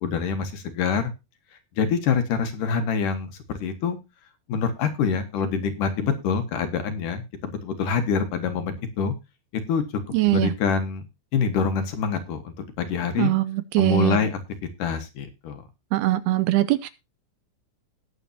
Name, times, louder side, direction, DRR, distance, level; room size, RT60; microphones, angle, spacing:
voice 1, 0.0-1.1 1.8-4.0 4.5-9.1 9.5-9.8 10.2-11.0 11.3-13.3 13.8-14.4 14.8-15.6, left 6 dB, 60° left, 8 dB, 2.5 m, -25 dB
voice 2, 10.1-10.5 13.2-14.2 15.9-16.9, right 16 dB, 80° right, 14 dB, 2.3 m, -22 dB
19.0 x 7.5 x 2.8 m, 0.25 s
omnidirectional pair, 5.1 m